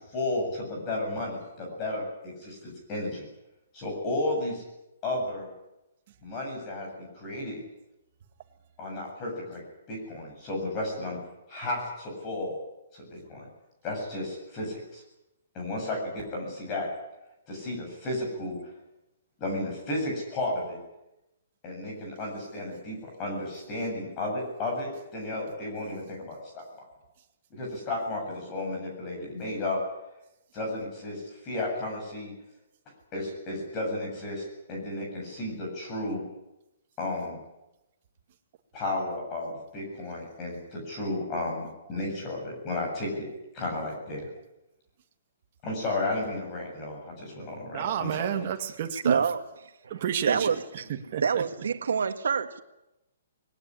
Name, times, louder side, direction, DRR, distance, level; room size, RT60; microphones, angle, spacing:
voice 1, 0.1-3.3 3.7-4.6 5.0-5.5 6.2-7.6 8.8-11.2 11.5-12.6 12.9-13.5 13.8-15.0 15.5-16.9 17.5-18.6 19.4-20.8 21.6-26.9 27.5-29.8 30.5-32.3 33.1-36.2 37.0-37.4 38.7-43.3 43.5-44.3 45.6-48.4, left 2 dB, 20° left, 7.8 m, -33 dB
voice 2, 47.7-49.2 49.9-50.5 50.9-51.4, right 9 dB, 35° right, 2.2 m, -30 dB
voice 3, 49.0-49.4 49.8-50.9 51.2-52.6, right 6 dB, 90° right, 1.7 m, -27 dB
21.0 x 18.5 x 10.0 m
hypercardioid pair, 175°, 0 cm